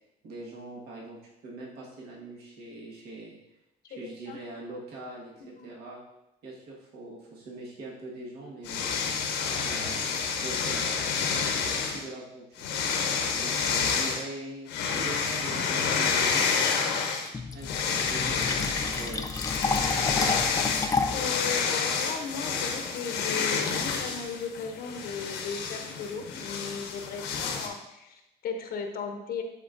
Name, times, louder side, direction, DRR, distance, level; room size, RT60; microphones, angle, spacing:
voice 1, 0.2-3.4 3.9-6.0 6.4-8.8 9.6-12.7 13.3-16.6 17.5-19.3 20.1-20.4, right 2 dB, 70° right, -4 dB, 1.6 m, -42 dB
voice 2, 4.0-4.4 5.5-5.7 13.4-13.6 21.1-29.4, left 5 dB, 65° left, 5 dB, 0.8 m, -36 dB
sound 1, 8.6-12.0 12.6-14.2 14.7-17.3 17.6-27.7, left 5 dB, 90° left, 1.0 m, -29 dB
Fill (with liquid), 17.3-21.3, left 4 dB, 20° left, 0.5 m, -30 dB
11.0 x 4.2 x 2.6 m, 0.90 s
cardioid pair, 110°, 17 cm